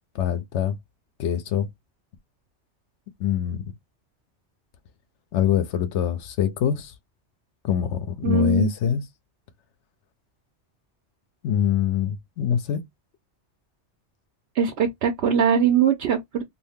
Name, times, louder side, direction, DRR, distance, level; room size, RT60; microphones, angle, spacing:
voice 1, 0.1-0.8 1.2-1.7 3.2-3.6 5.3-6.9 7.6-9.0 11.4-12.8, left 9 dB, 85° left, 0.9 m, -24 dB
voice 2, 8.2-8.7 14.6-16.4, right 6 dB, 70° right, 0.9 m, -21 dB
2.7 x 2.5 x 3.4 m
omnidirectional pair, 1.2 m